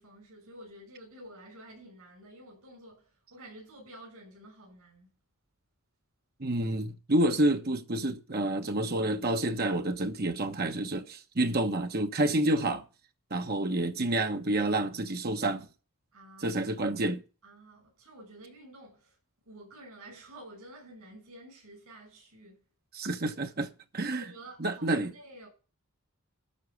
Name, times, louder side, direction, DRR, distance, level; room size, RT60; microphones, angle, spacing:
voice 1, 0.0-5.1 16.1-16.9 17.4-19.2 19.4-22.6 24.0-25.5, right 1 dB, 85° right, 6.5 m, -50 dB
voice 2, 6.4-12.8 13.3-15.7 16.4-17.2 22.9-24.2 24.6-25.1, right 1 dB, 45° right, 1.2 m, -29 dB
13.0 x 4.6 x 8.5 m
head